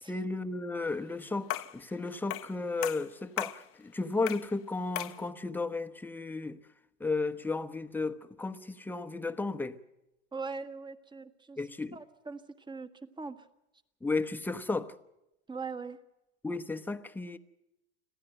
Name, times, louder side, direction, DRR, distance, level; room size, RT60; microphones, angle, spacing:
voice 1, 0.1-6.6 7.0-9.8 11.6-12.0 14.0-14.9 16.4-17.4, left 3 dB, 5° left, 1.1 m, -34 dB
sound 1, 1.5-1.8 2.3-2.6 2.8-3.6 4.3-4.5 5.0-5.2, left 15 dB, 40° left, 1.0 m, -36 dB
voice 2, 10.3-11.6 11.9-12.4 12.7-12.9 13.2-13.5 15.5-16.0, right 4 dB, 15° right, 1.6 m, -40 dB
26.0 x 16.0 x 7.8 m
supercardioid pair, 110°, 33 cm